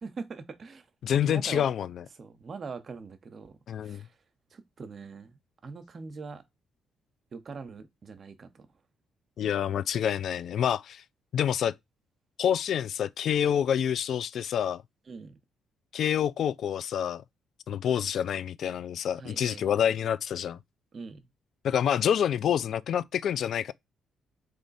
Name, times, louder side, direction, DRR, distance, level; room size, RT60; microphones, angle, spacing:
voice 1, 0.0-0.9 1.2-1.6 2.2-4.1 4.5-6.4 7.3-8.7 15.1-15.3 19.1-19.6 20.9-21.2, right 4 dB, 45° right, 0.8 m, -42 dB
voice 2, 1.0-2.0 3.7-4.0 9.4-11.0 11.3-11.7 12.4-14.8 15.9-17.2 17.7-20.6 21.6-23.7, left 9 dB, 65° left, 0.3 m, -27 dB
3.5 x 3.1 x 4.0 m
cardioid pair, 90°, 0 cm